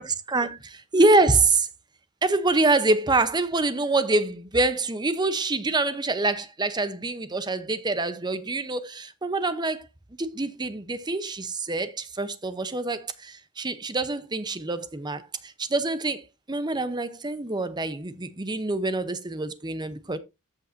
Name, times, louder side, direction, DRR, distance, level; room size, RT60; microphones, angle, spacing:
voice 1, 0.0-1.7 2.2-9.9 10.2-20.2, right 2 dB, 20° right, 0.8 m, -25 dB
14.5 x 5.4 x 2.6 m
head